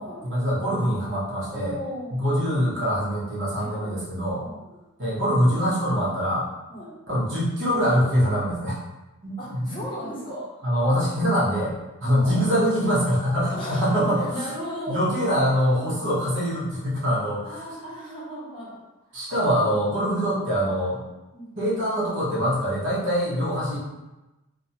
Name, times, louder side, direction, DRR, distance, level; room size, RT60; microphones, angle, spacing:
voice 1, 0.2-1.7 2.1-4.4 5.0-6.5 7.1-8.8 9.2-9.7 10.6-11.7 12.0-14.5 14.9-17.6 19.1-21.0 21.6-23.8, equal, 55° right, -7 dB, 0.9 m, -24 dB
voice 2, 1.5-2.2 3.6-3.9 4.4-4.7 6.7-6.9 9.4-10.7 12.0-12.5 13.5-15.0 15.7-16.1 17.4-18.8 19.1-19.2 21.3-21.6, equal, 25° left, -7 dB, 0.8 m, -36 dB
2.6 x 2.2 x 2.7 m, 1.0 s
head